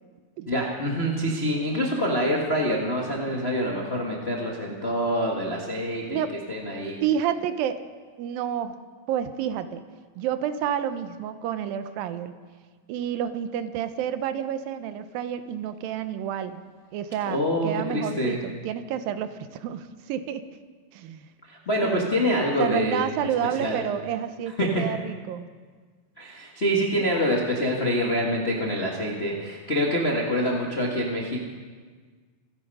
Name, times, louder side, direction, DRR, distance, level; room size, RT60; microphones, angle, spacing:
voice 1, 0.5-6.2 6.5-7.0 17.3-18.4 21.4-23.3 23.6-23.8 24.6-24.8 26.2-31.4, equal, 40° left, -2 dB, 0.8 m, -26 dB
voice 2, 6.1-6.4 7.0-7.8 8.2-8.8 9.1-9.8 10.2-12.3 12.9-16.6 16.9-20.4 20.9-21.3 21.8-22.1 22.6-25.4 27.0-27.1, right 9 dB, 80° right, 11 dB, 2.6 m, -29 dB
26.5 x 9.8 x 5.5 m, 1.5 s
omnidirectional pair, 4.1 m